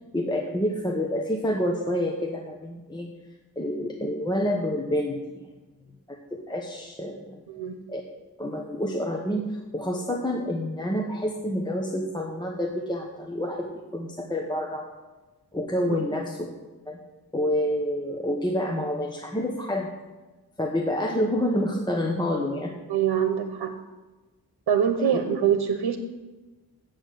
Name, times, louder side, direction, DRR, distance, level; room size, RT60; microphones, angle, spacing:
voice 1, 0.1-3.1 3.6-5.5 6.1-7.4 7.9-8.0 8.4-9.4 9.7-14.9 15.5-16.5 16.9-17.0 17.3-19.9 20.6-22.7, left 1 dB, 10° left, 1 dB, 1.0 m, -28 dB
voice 2, 7.5-7.8 15.9-16.0 22.9-23.7 24.7-26.0, right 8 dB, 85° right, 7 dB, 1.0 m, -24 dB
8.3 x 8.0 x 8.2 m, 1.2 s
wide cardioid pair, 125°, 38 cm